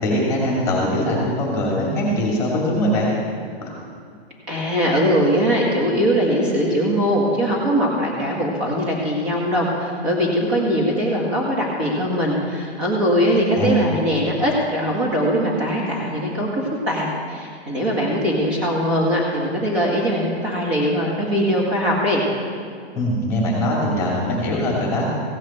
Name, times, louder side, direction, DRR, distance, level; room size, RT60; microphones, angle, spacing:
voice 1, 0.0-3.1 3.6-3.7 13.5-13.9 22.9-25.1, equal, 10° left, -3 dB, 2.5 m, -21 dB
voice 2, 4.5-22.2, equal, 30° right, -4 dB, 1.8 m, -21 dB
16.0 x 8.8 x 4.4 m, 2.2 s
hypercardioid pair, 170°, 33 cm